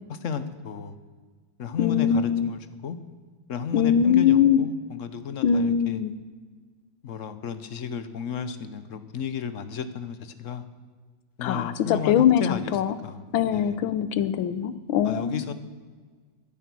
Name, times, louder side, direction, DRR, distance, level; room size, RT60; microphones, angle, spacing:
voice 1, 0.1-1.0 1.6-3.0 3.5-6.0 7.0-10.6 11.4-12.8 13.0-13.2 13.5-13.8 15.0-15.5, left 6 dB, 50° left, 11 dB, 1.0 m, -33 dB
voice 2, 1.8-2.5 3.7-4.6 5.4-6.1 11.4-13.0 13.3-15.5, left 8 dB, 90° left, 14 dB, 1.6 m, -22 dB
15.5 x 10.5 x 6.1 m, 1.5 s
omnidirectional pair, 2.1 m